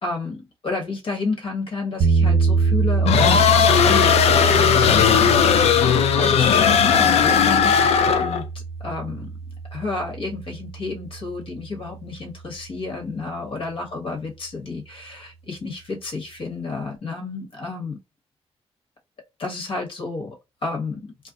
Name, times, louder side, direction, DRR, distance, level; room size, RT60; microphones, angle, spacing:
voice 1, 0.0-5.8 6.2-7.8 8.1-8.4 8.8-9.3 9.7-18.0 19.4-20.4 20.6-21.1, left 3 dB, 55° left, 1.1 m, -31 dB
sound 1, 2.0-12.0, right 4 dB, 85° right, 0.6 m, -25 dB
sound 2, 3.1-8.4, left 8 dB, 75° left, 0.4 m, -17 dB
2.4 x 2.1 x 3.8 m
wide cardioid pair, 155°, 11 cm